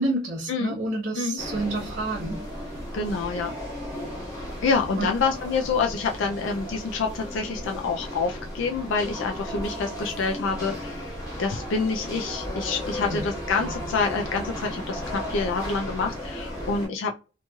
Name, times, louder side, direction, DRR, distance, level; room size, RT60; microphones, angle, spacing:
voice 1, 0.0-2.5 5.0-5.2 13.0-13.2, right 2 dB, 55° right, 0.8 m, -29 dB
sound 1, 1.4-16.9, equal, 20° left, 1.1 m, -35 dB
voice 2, 2.9-3.5 4.6-17.1, left 4 dB, 75° left, 0.4 m, -27 dB
2.9 x 2.7 x 2.3 m
head